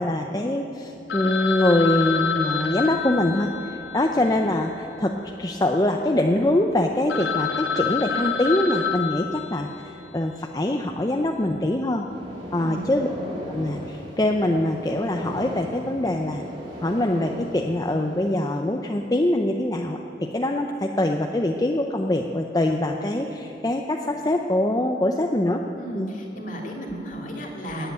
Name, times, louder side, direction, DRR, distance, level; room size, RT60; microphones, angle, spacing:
voice 1, 0.0-12.1 12.5-13.1 13.5-16.4 16.8-25.6 25.9-26.1, left 1 dB, 20° left, 3 dB, 0.5 m, -24 dB
Telephone, 1.1-5.4 5.7-5.8 6.4-6.5 6.8-6.9 7.1-10.1, left 7 dB, 80° left, 1.2 m, -28 dB
sound 1, 12.1-18.5, equal, 30° right, 4.3 m, -37 dB
voice 2, 12.5-12.9 25.8-27.9, right 1 dB, 45° left, 0 dB, 2.4 m, -34 dB
18.5 x 8.0 x 9.2 m, 2.9 s
head